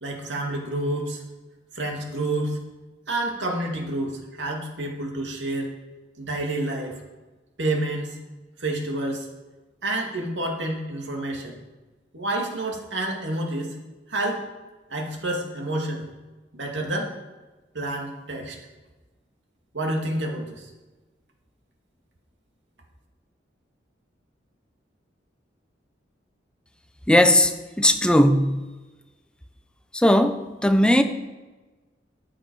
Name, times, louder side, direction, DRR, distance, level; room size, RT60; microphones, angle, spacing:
voice 1, 0.0-1.2 1.7-2.6 3.1-5.7 6.2-7.0 7.6-8.2 8.6-9.3 9.8-11.6 12.1-13.8 14.1-14.4 14.9-16.0 16.5-17.1 17.7-18.6 19.7-20.7, right 1 dB, 90° right, 1 dB, 2.2 m, -28 dB
voice 2, 27.1-28.7 29.9-31.0, left 1 dB, 5° left, 8 dB, 0.6 m, -18 dB
13.5 x 8.8 x 4.8 m, 1.2 s
head